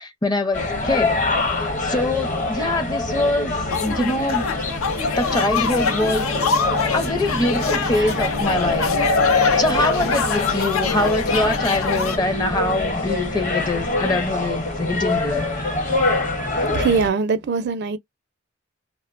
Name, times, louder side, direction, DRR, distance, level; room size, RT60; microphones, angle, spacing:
voice 1, 0.0-3.5 3.8-4.5 5.2-6.3 6.9-9.0 9.3-15.4, left 2 dB, 20° left, 0.6 m, -24 dB
sound 1, 0.5-17.1, left 2 dB, 40° left, 0.9 m, -25 dB
Shrieks and Squeals, 3.7-12.2, left 5 dB, 80° left, 0.5 m, -25 dB
sound 2, 6.1-11.9, left 4 dB, 65° left, 0.9 m, -27 dB
voice 2, 16.6-18.0, right 5 dB, 55° right, 0.4 m, -22 dB
3.0 x 2.1 x 2.4 m
head